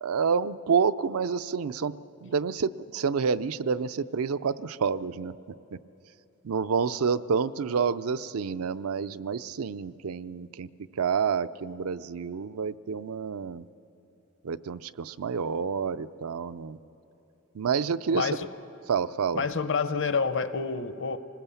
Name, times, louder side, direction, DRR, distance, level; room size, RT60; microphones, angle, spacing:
voice 1, 0.0-1.9 2.2-5.3 5.7-5.8 6.4-10.7 11.0-13.6 14.4-16.8 17.5-18.3 18.9-19.4, right 6 dB, 75° right, 14 dB, 0.5 m, -28 dB
voice 2, 18.1-18.5 19.3-21.2, left 5 dB, 55° left, 12 dB, 0.8 m, -28 dB
26.0 x 20.0 x 7.0 m, 3.0 s
head